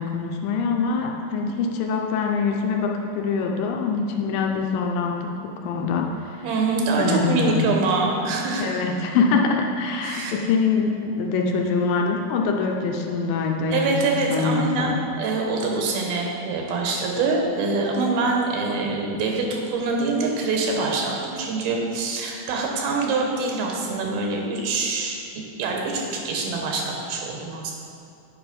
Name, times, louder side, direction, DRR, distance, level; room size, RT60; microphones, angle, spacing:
voice 1, 0.0-6.1 7.0-7.8 8.6-14.0 14.3-15.0, left 4 dB, 80° left, 2 dB, 2.3 m, -24 dB
voice 2, 6.4-8.8 10.0-10.3 13.7-27.7, right 3 dB, 85° right, 0 dB, 2.9 m, -25 dB
8.8 x 5.0 x 5.2 m, 2.6 s
omnidirectional pair, 4.2 m